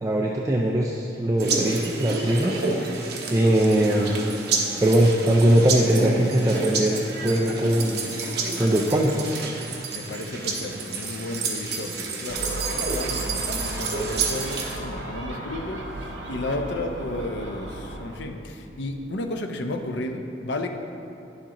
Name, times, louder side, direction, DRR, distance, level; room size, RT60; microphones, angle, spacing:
voice 1, 0.0-2.9 3.3-4.2 4.8-8.3 8.6-9.3, right 1 dB, 20° right, -1 dB, 0.4 m, -21 dB
sound 1, 1.4-14.8, right 4 dB, 60° right, 1.0 m, -29 dB
voice 2, 9.9-15.8 16.3-20.7, left 2 dB, 75° left, 5 dB, 0.6 m, -32 dB
Gull seagull, 12.3-18.2, right 1 dB, 80° right, 1.3 m, -35 dB
10.0 x 7.2 x 2.9 m, 2.9 s
head